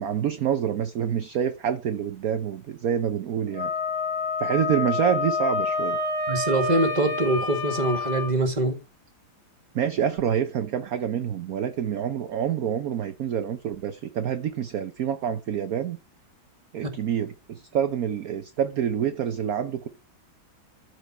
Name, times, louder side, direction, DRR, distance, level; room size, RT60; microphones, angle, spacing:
voice 1, 0.0-3.7 4.4-6.0 9.7-16.0 16.7-19.9, right 9 dB, 60° right, 1.1 m, -27 dB
Wind instrument woodwind instrument, 3.5-8.3, left 3 dB, 80° left, 3.4 m, -28 dB
voice 2, 6.3-8.8 16.8-16.9, right 1 dB, 20° right, 1.9 m, -24 dB
13.5 x 4.6 x 4.3 m
omnidirectional pair, 2.1 m